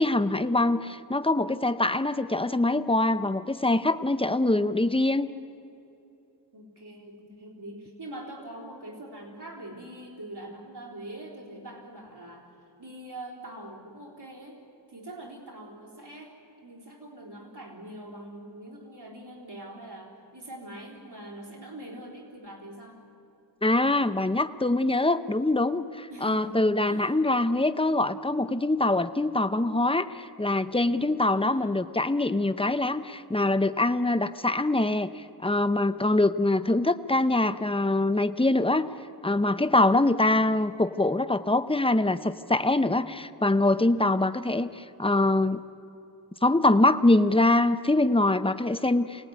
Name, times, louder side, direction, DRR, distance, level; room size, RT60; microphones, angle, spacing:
voice 1, 0.0-5.3 23.6-38.9 39.2-45.6 46.4-49.3, left 2 dB, 15° left, 12 dB, 0.8 m, -24 dB
voice 2, 4.2-4.8 6.5-14.6 14.9-23.0 26.1-27.2 31.4-31.8, right 1 dB, 85° right, -2 dB, 3.8 m, -43 dB
24.5 x 18.5 x 9.5 m, 2.8 s
wide cardioid pair, 40°, 39 cm